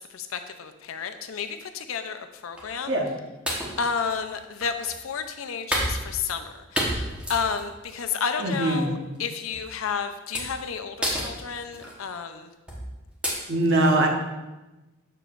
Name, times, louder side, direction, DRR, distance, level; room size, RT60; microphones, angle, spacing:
voice 1, 0.0-3.0 3.8-12.5, left 6 dB, 85° left, 8 dB, 0.5 m, -31 dB
sound 1, 2.6-2.8 3.5-5.0 5.7-6.5 6.8-8.0 8.4-8.7 9.5-9.7 10.3-10.7 11.0-11.9 12.7-12.9 13.2-13.3, equal, 5° right, 1.1 m, -30 dB
voice 2, 8.4-8.9 13.5-14.1, right 1 dB, 65° right, 1 dB, 1.1 m, -22 dB
6.9 x 6.7 x 2.5 m, 1.1 s
head